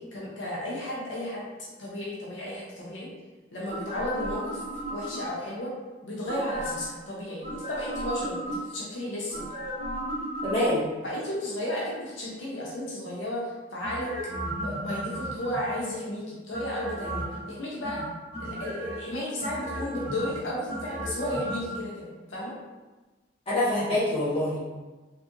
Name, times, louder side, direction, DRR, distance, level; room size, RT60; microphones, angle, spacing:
voice 1, 0.0-1.5 1.8-3.1 3.5-4.6 4.9-5.7 6.0-9.4 11.0-14.1 14.6-18.0 18.4-22.5, left 1 dB, 85° left, -5 dB, 0.8 m, -33 dB
sound 1, 3.7-5.5 6.3-7.0 7.4-8.9 9.3-11.0 13.8-15.9 16.5-17.4 17.8-19.0 19.4-21.8 22.1-22.2, right 1 dB, 35° right, 0.8 m, -35 dB
voice 2, 10.4-10.8 23.5-24.6, left 1 dB, 30° left, -10 dB, 1.4 m, -25 dB
4.1 x 2.6 x 2.6 m, 1.2 s
head